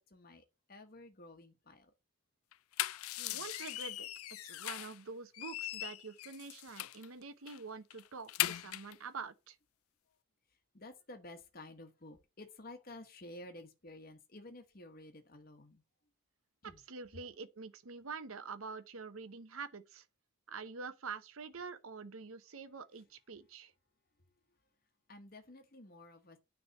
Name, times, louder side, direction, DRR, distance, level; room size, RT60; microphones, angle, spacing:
voice 1, 0.0-1.9 3.3-3.4 10.7-15.8 16.6-16.8 25.1-26.4, left 1 dB, 40° left, 1.1 m, -52 dB
sound 1, 2.5-5.0 5.3-7.1 7.5-7.6 7.9-9.0, left 14 dB, 80° left, 0.4 m, -39 dB
voice 2, 3.2-4.1 4.4-9.6 16.6-20.1 20.5-23.7, right 4 dB, 75° right, 0.9 m, -46 dB
9.2 x 3.4 x 6.4 m
head